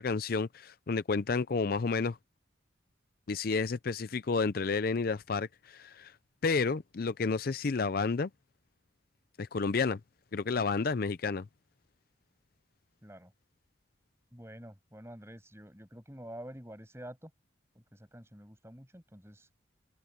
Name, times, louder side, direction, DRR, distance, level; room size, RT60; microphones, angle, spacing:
voice 1, 0.0-2.2 3.3-6.1 6.4-8.3 9.4-10.0 10.3-11.5, left 4 dB, 50° left, 0.5 m, -30 dB
voice 2, 13.0-13.3 14.3-17.3 17.7-19.5, equal, 15° right, 7.9 m, -48 dB
head